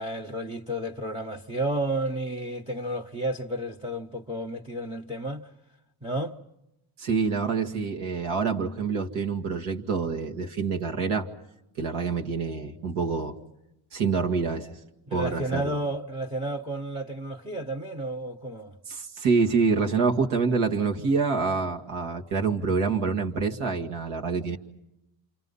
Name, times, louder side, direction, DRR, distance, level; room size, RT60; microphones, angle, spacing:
voice 1, 0.0-5.5 6.0-6.4 15.1-18.8, right 1 dB, 10° right, 1.1 m, -32 dB
voice 2, 7.0-11.3 11.8-13.4 13.9-14.7 15.1-15.8 18.9-24.6, right 5 dB, 85° right, 2.2 m, -26 dB
29.5 x 27.5 x 5.6 m
cardioid pair, 90°, 49 cm